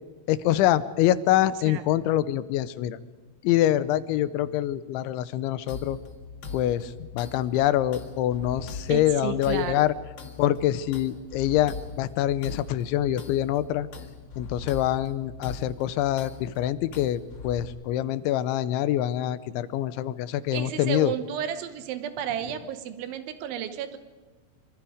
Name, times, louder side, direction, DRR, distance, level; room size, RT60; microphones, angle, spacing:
voice 1, 0.3-3.0 3.4-6.0 6.5-9.9 10.4-13.9 14.4-21.1, left 13 dB, 85° left, 15 dB, 3.2 m, -25 dB
sound 1, 5.7-17.6, left 4 dB, 65° left, 1.1 m, -41 dB
voice 2, 8.9-9.8 20.5-24.0, right 9 dB, 80° right, 10 dB, 3.4 m, -32 dB
25.5 x 25.5 x 5.0 m, 1.4 s
omnidirectional pair, 5.3 m